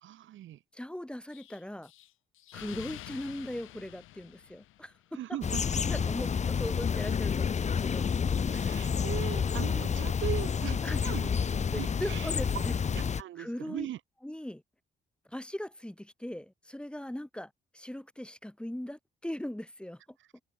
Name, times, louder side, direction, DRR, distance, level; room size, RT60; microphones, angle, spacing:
voice 1, 0.0-0.6 5.1-5.8 8.5-12.6 12.9-14.0, right 13 dB, 75° right, 1.8 m, -39 dB
voice 2, 0.7-1.9 2.5-5.2 5.9-8.4 10.8-11.0 11.7-12.7 13.4-13.9 14.2-14.6 15.3-20.4, left 1 dB, 5° left, 3.2 m, -39 dB
Explosion, 1.3-5.2, left 15 dB, 85° left, 2.6 m, -48 dB
sound 1, 5.4-13.2, left 6 dB, 35° left, 0.9 m, -29 dB
cardioid pair, 90°, 20 cm